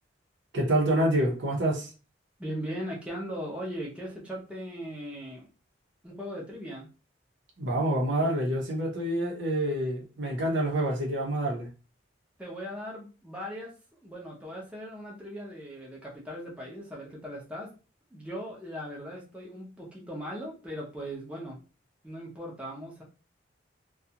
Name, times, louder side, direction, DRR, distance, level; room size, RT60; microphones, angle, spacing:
voice 1, 0.5-1.9 7.6-11.7, right 1 dB, 70° right, 0.8 m, -27 dB
voice 2, 2.4-5.5 6.0-6.9 12.4-13.7 14.0-17.7 18.1-21.6 22.0-23.0, equal, 5° right, 0.6 m, -39 dB
2.5 x 2.3 x 2.8 m
head